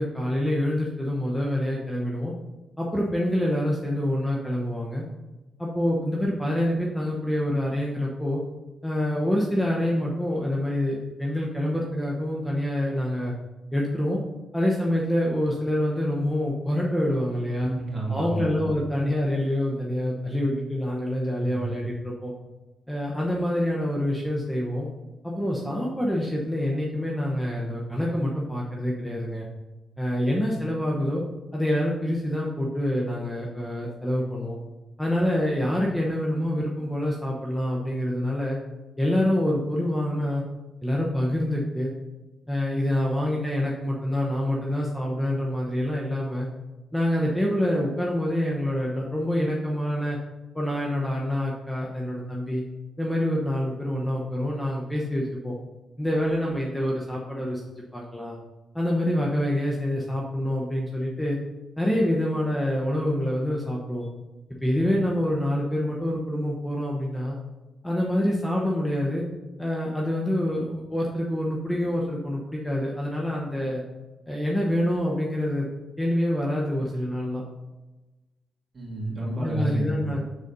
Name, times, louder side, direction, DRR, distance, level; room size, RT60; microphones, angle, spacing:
voice 1, 0.0-2.3 2.8-5.0 5.6-8.4 8.8-13.3 13.7-14.2 14.5-17.7 18.1-22.3 22.9-24.9 25.2-29.5 30.0-31.2 31.5-34.6 35.0-38.6 39.0-40.4 40.8-41.9 42.5-46.5 46.9-50.2 50.5-52.6 53.0-55.5 56.0-57.6 57.9-58.4 58.7-61.4 61.8-64.1 64.6-67.4 67.8-69.2 69.6-73.8 74.3-75.7 76.0-77.4 79.4-80.2, left 1 dB, 5° left, -3 dB, 0.9 m, -26 dB
voice 2, 17.6-18.4 21.4-21.7 78.7-80.0, right 1 dB, 35° right, -4 dB, 2.5 m, -30 dB
6.6 x 4.1 x 5.4 m, 1.1 s
cardioid pair, 120°, 0 cm